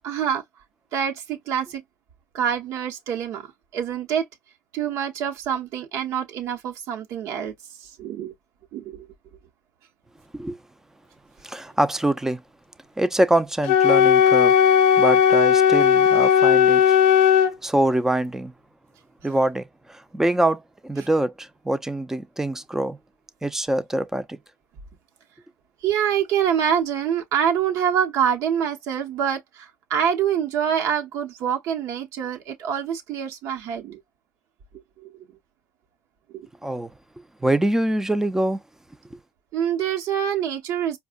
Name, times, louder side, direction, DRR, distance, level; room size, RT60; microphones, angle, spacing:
voice 1, 0.0-0.4 0.9-1.8 2.3-3.5 3.7-4.3 4.7-7.5 7.8-8.3 8.7-9.1 25.8-34.0 36.3-36.5 39.5-41.0, right 8 dB, 60° right, 1.0 m, -25 dB
voice 2, 11.4-12.4 13.0-14.5 15.0-17.0 17.3-18.5 19.2-23.0 23.4-24.4 36.6-36.9 37.4-38.6 39.1-39.2, right 1 dB, 10° right, 0.5 m, -24 dB
Wind instrument woodwind instrument, 13.6-17.5, left 8 dB, 80° left, 0.5 m, -16 dB
4.8 x 2.2 x 2.4 m
supercardioid pair, 85°, 6 cm